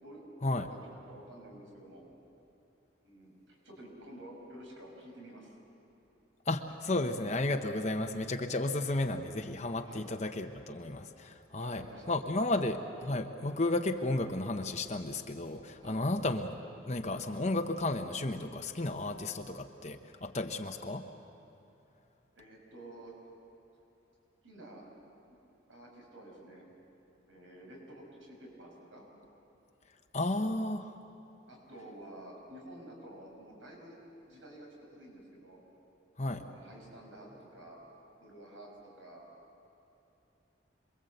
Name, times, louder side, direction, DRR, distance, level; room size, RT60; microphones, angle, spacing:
voice 1, 0.0-2.1 3.0-5.5 8.5-8.7 9.8-10.1 11.6-12.1 12.5-12.7 15.8-16.0 22.4-23.1 24.4-24.8 25.7-26.6 27.3-29.0 31.5-33.9 34.3-35.6 36.3-37.8 38.2-39.3, right 1 dB, 80° right, 0 dB, 6.2 m, -50 dB
voice 2, 6.5-16.6 16.9-21.1 30.1-30.9 36.2-36.4, left 2 dB, 35° left, 5 dB, 0.9 m, -33 dB
27.5 x 22.5 x 8.0 m, 2.9 s
head